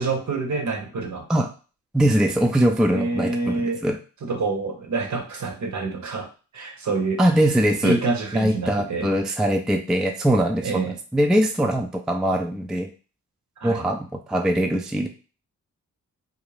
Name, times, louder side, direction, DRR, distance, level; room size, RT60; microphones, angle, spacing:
voice 1, 0.0-1.3 2.9-3.8 4.2-7.2 7.8-9.1 10.6-11.0 13.6-13.9, right 3 dB, 55° right, 4 dB, 0.8 m, -27 dB
voice 2, 1.9-4.0 7.2-8.0 8.3-10.8 11.1-12.9 13.6-15.1, right 1 dB, ahead, 4 dB, 0.3 m, -21 dB
2.4 x 2.0 x 3.2 m, 0.35 s
cardioid pair, 45°, 34 cm